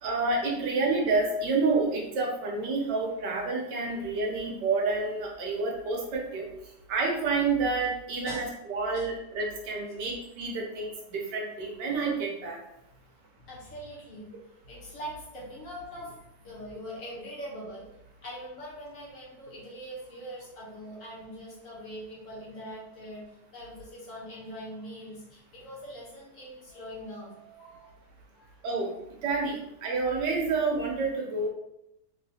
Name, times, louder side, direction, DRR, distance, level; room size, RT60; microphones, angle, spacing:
voice 1, 0.0-6.5 6.9-12.6 28.6-28.9 29.2-31.5, right 3 dB, 90° right, -1 dB, 1.5 m, -29 dB
voice 2, 13.5-14.3 14.7-16.1 16.4-17.9 18.2-28.0 28.3-28.5, equal, 55° left, -5 dB, 1.3 m, -42 dB
3.5 x 2.8 x 2.8 m, 0.83 s
omnidirectional pair, 1.8 m